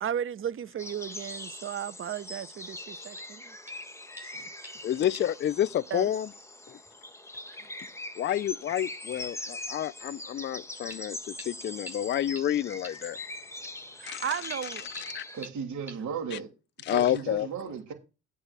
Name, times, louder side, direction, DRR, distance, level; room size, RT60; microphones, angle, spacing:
voice 1, 0.0-3.5 4.2-4.4 5.9-6.1 14.0-14.9, right 9 dB, 45° right, 0.6 m, -35 dB
sound 1, 0.8-15.5, left 1 dB, 10° left, 1.1 m, -42 dB
sound 2, 3.2-3.4 3.7-3.9 4.2-4.9 5.1-5.4 5.7-5.8 6.9-7.0 7.3-7.4 7.8-7.9 8.3-8.4 8.8-8.9 9.2-9.4 10.9-11.0 11.4-11.5 11.9-12.0 12.4-12.5 12.8-12.9 14.5-14.6 15.0-15.1 15.4-15.5 15.9-16.0, right 1 dB, 5° right, 2.0 m, -46 dB
voice 2, 4.8-6.3 6.7-6.8 8.2-13.2 14.1-14.4 14.9-15.2 16.3-16.4 16.8-17.5, left 11 dB, 40° left, 0.4 m, -29 dB
voice 3, 15.3-16.5 16.8-17.9, right 6 dB, 75° right, 3.0 m, -35 dB
8.8 x 4.8 x 7.4 m
cardioid pair, 90°, 30 cm